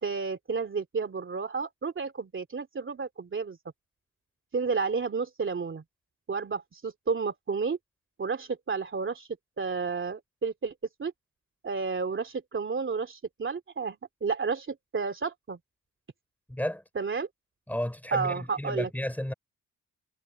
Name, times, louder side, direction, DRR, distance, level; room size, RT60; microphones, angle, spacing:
voice 1, 0.0-3.6 4.5-5.8 6.3-7.8 8.2-9.3 9.6-10.7 11.0-11.1 11.6-15.6 16.9-17.3 18.1-18.9, right 5 dB, 35° right, 2.7 m, -31 dB
voice 2, 16.5-16.8 17.7-19.3, left 1 dB, 5° left, 4.9 m, -32 dB
cardioid pair, 125°, 33 cm